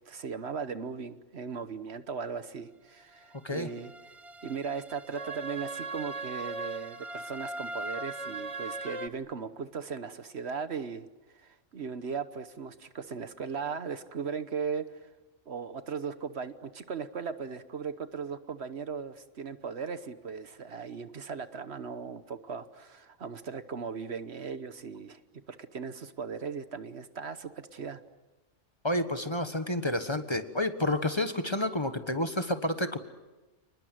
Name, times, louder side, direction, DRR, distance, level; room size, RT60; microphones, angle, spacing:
voice 1, 0.1-3.9 4.4-11.1 11.3-15.1 15.5-25.2 25.5-28.0, right 6 dB, 60° right, 12 dB, 1.3 m, -38 dB
sound 1, 3.3-9.1, right 3 dB, 30° right, 1.0 m, -39 dB
voice 2, 28.8-33.0, left 1 dB, 25° left, 9 dB, 1.4 m, -30 dB
30.0 x 20.5 x 9.2 m, 1.1 s
omnidirectional pair, 1.2 m